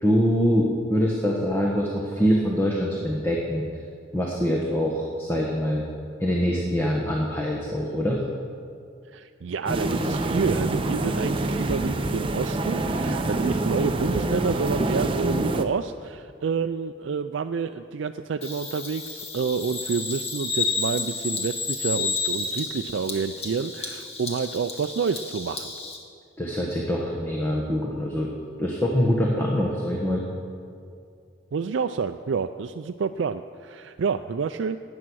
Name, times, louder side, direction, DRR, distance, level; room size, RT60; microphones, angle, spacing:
voice 1, 0.0-3.6 4.1-5.9 6.2-8.2 26.4-28.3 28.6-30.2, equal, 15° left, -2 dB, 1.3 m, -24 dB
voice 2, 9.0-25.7 31.5-34.8, right 5 dB, 80° right, 7 dB, 0.4 m, -28 dB
sound 1, 9.7-15.6, right 2 dB, 25° right, 0.7 m, -26 dB
Bird vocalization bird call bird song, 18.4-26.0, left 4 dB, 30° left, 1.7 m, -31 dB
17.0 x 9.9 x 6.3 m, 2.4 s
head